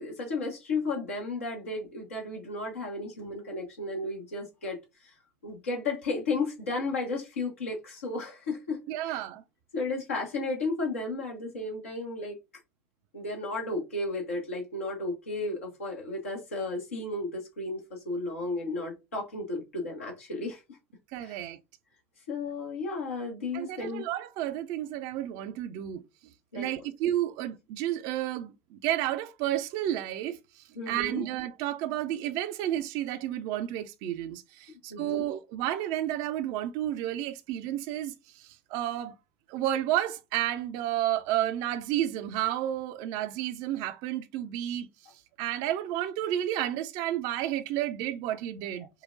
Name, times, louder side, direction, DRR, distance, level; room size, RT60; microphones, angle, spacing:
voice 1, 0.0-5.1 5.4-8.8 9.0-9.2 9.7-12.4 13.1-20.6 21.2-21.4 22.3-24.0 26.5-26.7 30.8-31.2 34.9-35.2, left 3 dB, 75° left, 1.0 m, -33 dB
voice 2, 8.9-9.4 21.1-21.6 23.5-26.0 26.5-39.1 39.5-44.9 45.4-48.9, right 12 dB, 55° right, 0.5 m, -31 dB
5.5 x 2.2 x 2.6 m
figure-of-eight pair, 65°, 7 cm